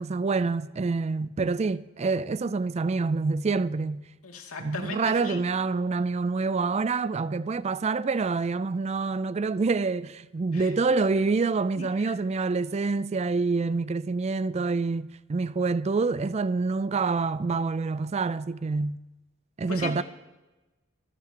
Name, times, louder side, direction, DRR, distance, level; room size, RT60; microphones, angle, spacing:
voice 1, 0.0-4.0 4.6-19.0 19.6-20.0, right 4 dB, 30° right, 0.4 m, -27 dB
voice 2, 4.2-5.4 10.5-10.7 11.8-12.1 19.7-20.0, left 4 dB, 80° left, 2.4 m, -37 dB
25.0 x 13.5 x 2.9 m
head